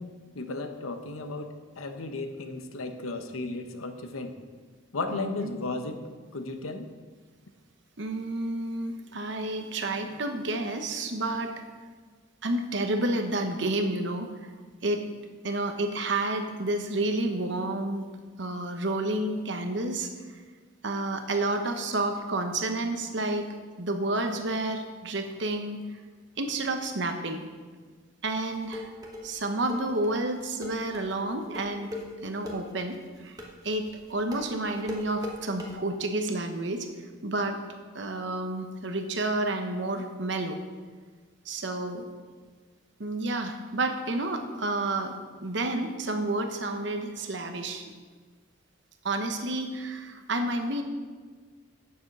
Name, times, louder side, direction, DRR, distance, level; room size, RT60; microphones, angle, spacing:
voice 1, 0.0-4.3 4.9-6.0 6.3-6.9, left 2 dB, 90° left, 7 dB, 0.9 m, -35 dB
voice 2, 5.1-5.5 8.0-11.5 12.4-14.3 14.8-15.0 15.4-18.1 18.4-20.1 20.8-25.9 26.4-27.4 28.2-28.9 29.2-31.9 32.2-33.4 33.6-36.9 37.2-37.6 37.9-40.6 41.4-42.0 43.0-45.1 45.4-47.9 49.0-50.8, right 2 dB, 60° right, 5 dB, 1.0 m, -30 dB
sound 1, 28.3-35.7, left 1 dB, 20° right, 1.1 m, -39 dB
9.1 x 7.0 x 5.4 m, 1.5 s
head